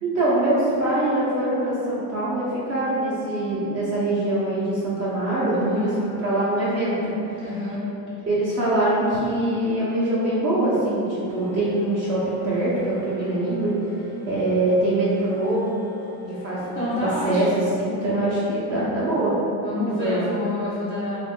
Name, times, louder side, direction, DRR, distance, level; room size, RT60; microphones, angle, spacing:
voice 1, 0.0-7.0 7.3-7.4 8.3-13.8 14.3-15.7 16.2-17.5 17.7-19.3 20.0-20.3, right 1 dB, 35° right, -9 dB, 0.6 m, -23 dB
voice 2, 5.3-6.0 7.4-7.8 16.6-17.4 19.6-21.2, left 2 dB, 15° left, -12 dB, 0.3 m, -28 dB
sound 1, 11.3-17.1, left 3 dB, 70° left, 0.5 m, -42 dB
2.9 x 2.4 x 3.5 m, 2.8 s
cardioid pair, 155°, 45 cm